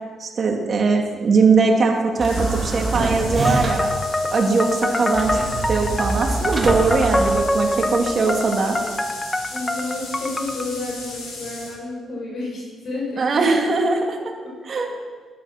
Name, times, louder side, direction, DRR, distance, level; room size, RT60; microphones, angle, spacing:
voice 1, 0.2-3.9 4.3-5.4 5.7-8.8 13.2-14.2 14.7-14.9, right 4 dB, 45° right, 1 dB, 2.6 m, -20 dB
sound 1, 2.2-11.7, left 3 dB, 90° left, 5.2 m, -36 dB
sound 2, 2.2-4.0 5.1-8.0, right 2 dB, 30° right, 1.8 m, -25 dB
sound 3, 3.4-10.7, left 1 dB, 15° left, 1.1 m, -25 dB
voice 2, 9.5-13.5 14.4-14.8, left 2 dB, 55° left, -2 dB, 4.6 m, -31 dB
11.5 x 11.5 x 5.9 m, 1.5 s
cardioid pair, 90°, 0 cm